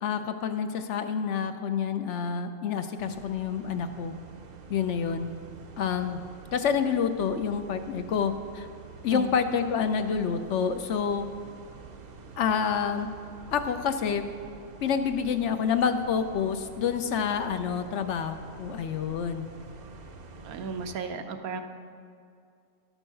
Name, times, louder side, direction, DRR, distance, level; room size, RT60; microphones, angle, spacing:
voice 1, 0.0-4.1 4.7-5.3 5.8-6.2 6.5-8.7 9.0-11.3 12.4-13.1 13.5-14.3 14.8-19.5, left 7 dB, 65° left, 8 dB, 0.8 m, -28 dB
sound 1, 3.0-21.0, right 4 dB, 45° right, 0.5 m, -47 dB
voice 2, 20.4-21.6, right 5 dB, 90° right, 6 dB, 1.2 m, -35 dB
11.5 x 6.2 x 6.6 m, 2.3 s
omnidirectional pair, 1.5 m